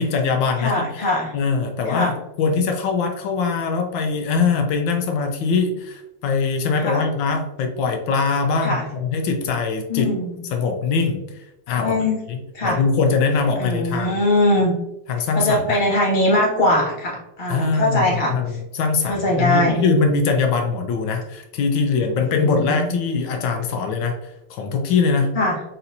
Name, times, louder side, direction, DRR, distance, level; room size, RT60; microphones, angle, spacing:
voice 1, 0.0-1.1 1.3-10.1 10.5-12.0 12.3-14.2 15.1-15.8 17.5-25.3, left 4 dB, 80° left, 4 dB, 1.4 m, -22 dB
voice 2, 0.6-1.3 1.9-2.1 6.8-7.0 8.6-8.8 9.9-10.4 11.8-12.2 12.5-12.8 13.6-14.7 15.3-18.3 19.1-19.8 22.4-23.0 25.3-25.6, left 1 dB, 30° left, -4 dB, 1.3 m, -21 dB
4.2 x 4.1 x 2.6 m, 0.92 s
omnidirectional pair, 2.0 m